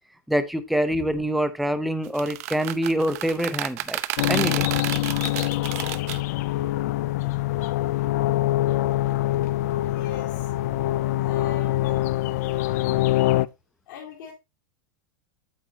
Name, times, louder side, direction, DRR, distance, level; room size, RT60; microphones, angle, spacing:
voice 1, 0.3-4.0 4.3-4.7, equal, ahead, 10 dB, 0.5 m, -25 dB
sound 1, 2.0-6.2, right 16 dB, 50° right, 0.6 m, -31 dB
sound 2, 4.2-13.5, left 16 dB, 50° left, 0.4 m, -24 dB
voice 2, 9.6-10.5 11.2-12.0 13.9-14.3, left 7 dB, 70° left, -2 dB, 2.9 m, -40 dB
9.1 x 7.3 x 2.7 m, 0.23 s
supercardioid pair, 175°, 11 cm